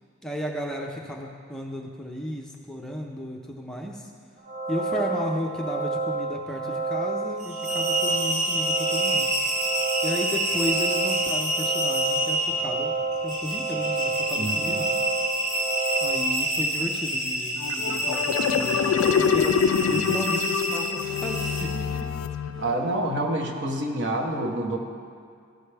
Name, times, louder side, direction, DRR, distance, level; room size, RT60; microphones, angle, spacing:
voice 1, 0.2-4.1 4.7-9.3 10.0-12.9 13.2-14.9 16.0-22.1, equal, 5° left, -1 dB, 0.5 m, -34 dB
sound 1, 4.4-16.2, right 3 dB, 80° right, 1.9 m, -30 dB
sound 2, 7.4-21.6, right 1 dB, 40° right, 1.2 m, -28 dB
voice 2, 14.4-14.8 19.8-20.2 22.6-24.8, right 1 dB, 55° right, 2 dB, 0.9 m, -28 dB
sound 3, 17.6-23.0, left 7 dB, 75° left, 0.3 m, -25 dB
14.0 x 5.7 x 3.3 m, 2.2 s
head